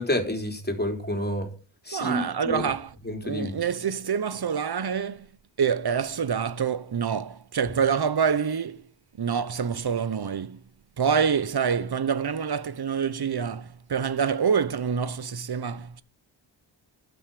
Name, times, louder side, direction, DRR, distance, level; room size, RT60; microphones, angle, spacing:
voice 1, 0.0-1.5 1.8-2.7 3.1-3.5, left 1 dB, 20° left, 3.9 m, -29 dB
voice 2, 1.9-2.9 3.2-5.3 5.6-8.9 9.2-10.6 11.0-16.0, right 7 dB, 50° right, 1.0 m, -26 dB
11.5 x 6.4 x 8.4 m
cardioid pair, 55°, 47 cm